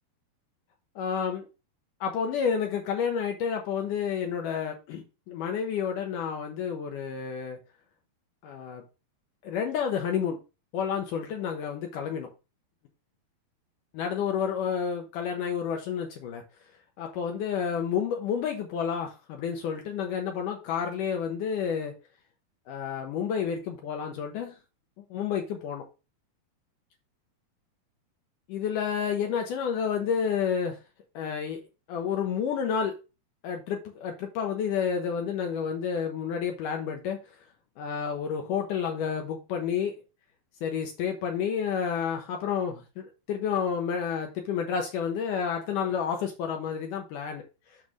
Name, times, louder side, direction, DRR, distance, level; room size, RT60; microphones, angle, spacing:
voice 1, 1.0-1.5 2.0-7.6 8.4-8.8 9.4-10.4 10.7-12.3 13.9-16.4 17.0-21.9 22.7-24.6 25.1-25.9 28.5-30.8 31.2-31.6 31.9-32.9 33.4-37.2 37.8-39.9 40.6-47.4, left 7 dB, 75° left, 2.0 m, -30 dB
7.5 x 3.2 x 6.2 m
omnidirectional pair, 4.5 m